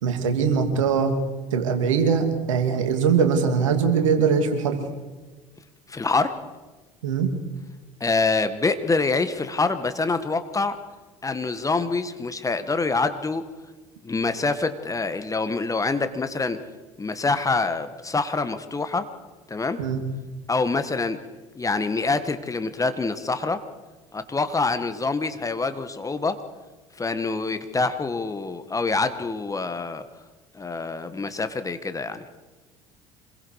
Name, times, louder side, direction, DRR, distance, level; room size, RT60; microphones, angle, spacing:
voice 1, 0.0-1.2 1.5-4.8 7.0-7.3 19.8-20.0, right 6 dB, 75° right, 5 dB, 2.6 m, -21 dB
voice 2, 5.9-6.4 8.0-10.8 11.2-13.4 14.0-16.6 17.0-19.1 19.5-19.8 20.5-21.2 21.5-23.6 24.1-26.4 27.0-30.0 30.5-32.2, left 3 dB, 20° left, 10 dB, 1.7 m, -25 dB
27.0 x 21.5 x 4.9 m, 1.2 s
figure-of-eight pair, 60°, 16 cm